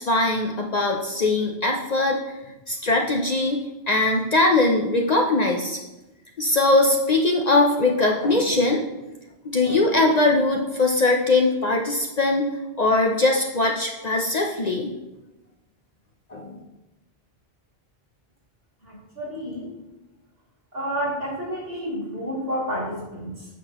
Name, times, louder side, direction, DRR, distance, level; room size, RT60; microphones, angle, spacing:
voice 1, 0.0-2.2 2.7-3.6 3.9-5.8 6.4-8.8 9.4-12.5 12.8-14.9 16.3-16.6, left 2 dB, 45° left, 1 dB, 0.6 m, -21 dB
voice 2, 18.8-19.7 20.7-23.5, equal, 65° right, -5 dB, 2.7 m, -30 dB
8.2 x 5.9 x 3.0 m, 1.0 s
omnidirectional pair, 1.1 m